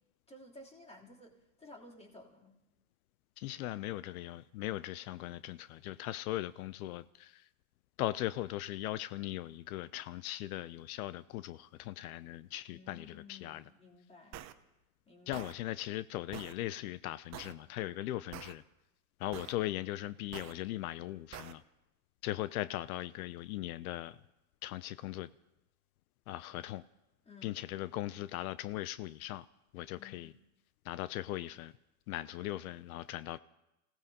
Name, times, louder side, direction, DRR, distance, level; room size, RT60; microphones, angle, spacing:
voice 1, 0.3-2.6 12.7-14.5 15.1-15.5 27.2-27.6 29.9-30.3, left 2 dB, 15° left, -2 dB, 3.1 m, -55 dB
voice 2, 3.4-7.5 8.0-13.6 15.3-18.6 19.2-21.6 22.2-24.2 24.6-25.3 26.3-26.8 27.4-29.5 29.7-30.3 30.8-31.7 32.1-33.4, left 15 dB, 80° left, 16 dB, 0.6 m, -39 dB
sound 1, 14.3-14.5 15.3-15.5 16.3-16.5 17.3-17.5 18.3-18.5 19.3-19.5 20.3-20.5 21.3-21.5, right 12 dB, 40° right, 0.9 m, -46 dB
29.5 x 17.0 x 2.8 m, 0.95 s
supercardioid pair, 115°, 43 cm